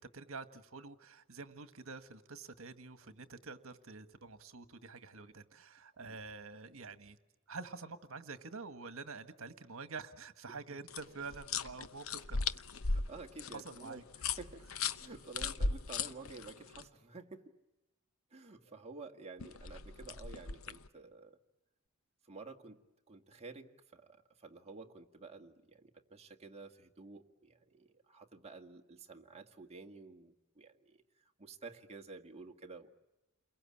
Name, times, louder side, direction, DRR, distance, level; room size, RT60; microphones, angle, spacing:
voice 1, 0.0-7.2 7.5-12.5 13.5-14.0, right 4 dB, 65° right, 10 dB, 1.6 m, -47 dB
sound 1, 10.9-16.8 19.4-20.9, left 4 dB, 70° left, 0.9 m, -38 dB
voice 2, 12.9-14.7 15.0-17.5 18.3-21.4 22.2-22.8 23.1-32.9, right 3 dB, 30° right, 3 dB, 1.9 m, -51 dB
29.5 x 22.5 x 8.6 m, 1.0 s
head